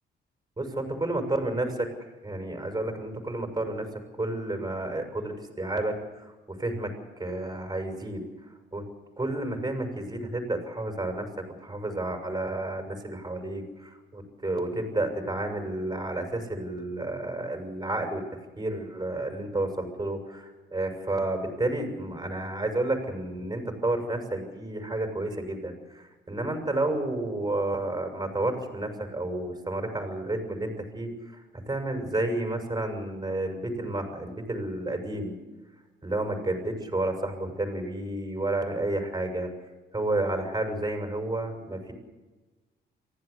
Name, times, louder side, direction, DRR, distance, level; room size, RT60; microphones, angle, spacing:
voice 1, 0.6-1.9 2.2-3.9 4.2-8.8 9.2-11.3 11.6-18.2 18.6-35.4 36.0-39.5 39.9-41.9, right 2 dB, 20° right, 4 dB, 6.6 m, -31 dB
24.0 x 16.0 x 8.4 m, 1.2 s
cardioid pair, 90°, 20 cm